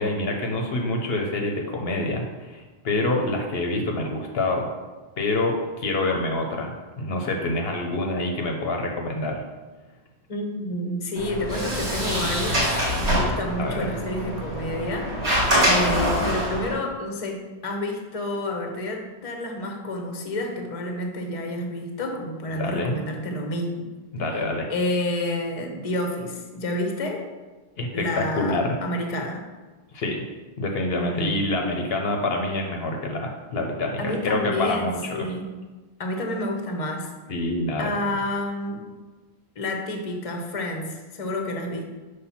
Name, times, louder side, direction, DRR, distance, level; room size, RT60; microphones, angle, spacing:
voice 1, 0.0-4.7 5.2-9.4 13.6-13.9 22.6-22.9 24.1-24.7 27.8-28.8 29.9-30.2 30.6-35.3 37.3-38.2, left 2 dB, 65° left, 2 dB, 0.9 m, -26 dB
voice 2, 10.3-12.6 13.0-15.1 15.6-23.9 24.3-24.4 24.7-27.2 27.9-29.4 31.0-31.5 34.0-35.4 36.0-37.1 37.8-38.8 39.6-41.8, left 1 dB, 35° left, 3 dB, 0.8 m, -29 dB
Sliding door, 11.2-16.7, equal, 80° right, 2.1 m, -24 dB
5.7 x 3.3 x 5.6 m, 1.3 s
omnidirectional pair, 1.1 m